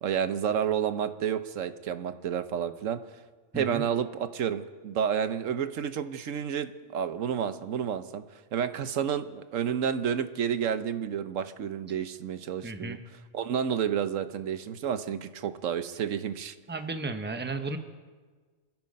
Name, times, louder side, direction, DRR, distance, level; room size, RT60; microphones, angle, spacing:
voice 1, 0.0-3.0 3.5-8.2 8.5-13.0 13.3-16.6, right 8 dB, 85° right, 11 dB, 1.2 m, -30 dB
voice 2, 3.5-3.8 12.6-13.0 16.7-17.8, right 3 dB, 10° right, 7 dB, 0.9 m, -34 dB
27.5 x 9.3 x 5.4 m, 1.4 s
omnidirectional pair, 1.3 m